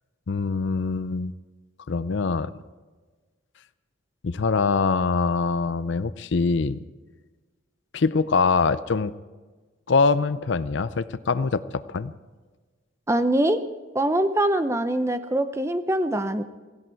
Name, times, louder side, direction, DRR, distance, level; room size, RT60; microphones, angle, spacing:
voice 1, 0.3-1.4 1.9-2.5 4.2-6.8 7.9-9.1 9.9-12.1, left 4 dB, 60° left, 15 dB, 0.5 m, -23 dB
voice 2, 13.1-13.6 13.9-16.4, right 1 dB, 15° right, 10 dB, 0.6 m, -23 dB
17.0 x 15.5 x 4.5 m, 1.3 s
head